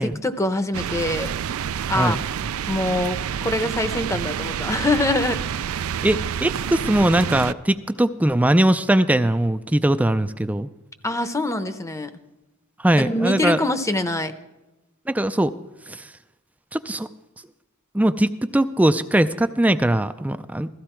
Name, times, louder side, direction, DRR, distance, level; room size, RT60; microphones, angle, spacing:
voice 1, 0.0-1.4 1.9-2.2 2.7-5.4 5.9-6.1 11.0-12.1 13.0-14.3, left 2 dB, 15° left, 10 dB, 0.8 m, -24 dB
sound 1, 0.7-7.5, right 8 dB, 80° right, 0.4 m, -28 dB
voice 2, 6.0-10.7 12.8-13.6 15.1-15.5 15.9-16.1 16.7-17.1 17.9-20.7, right 1 dB, 5° right, 11 dB, 0.4 m, -20 dB
16.0 x 14.5 x 4.4 m, 1.0 s
head